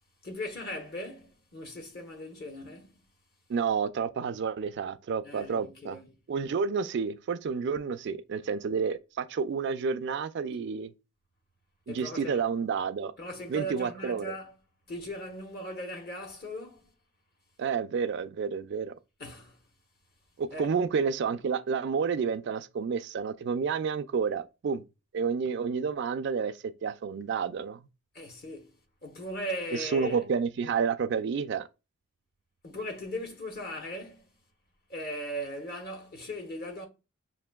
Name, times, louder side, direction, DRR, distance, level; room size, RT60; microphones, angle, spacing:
voice 1, 0.2-3.0 5.2-6.2 11.9-12.4 13.2-14.6 14.9-16.9 19.2-19.6 20.5-20.7 28.1-28.7 29.0-30.2 32.6-34.3 34.9-36.9, equal, 45° left, 0.8 m, -38 dB
voice 2, 3.5-6.0 6.3-10.9 11.9-13.1 13.5-14.3 17.6-18.9 20.4-24.8 25.1-27.8 29.8-31.7, right 6 dB, 55° right, 0.3 m, -30 dB
5.9 x 2.5 x 2.2 m
head